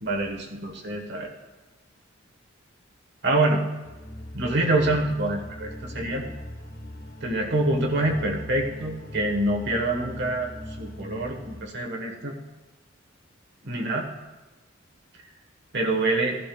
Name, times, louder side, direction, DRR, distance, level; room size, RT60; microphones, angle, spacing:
voice 1, 0.0-1.3 3.2-3.6 4.3-6.2 7.2-10.5 10.8-12.4 13.6-14.1 15.7-16.4, right 2 dB, 60° right, 1 dB, 1.3 m, -26 dB
sound 1, 3.8-11.6, equal, 50° left, 1.2 m, -40 dB
14.5 x 12.0 x 2.3 m, 1.1 s
head